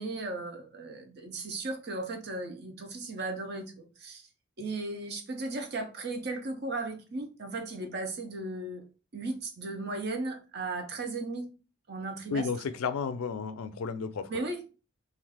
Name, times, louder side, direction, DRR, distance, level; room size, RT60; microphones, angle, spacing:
voice 1, 0.0-4.3 4.6-8.8 9.1-11.5 11.9-12.5 14.3-14.6, right 2 dB, 50° right, 0.5 m, -36 dB
voice 2, 12.3-14.3, left 5 dB, 85° left, 0.4 m, -32 dB
2.5 x 2.3 x 3.3 m
head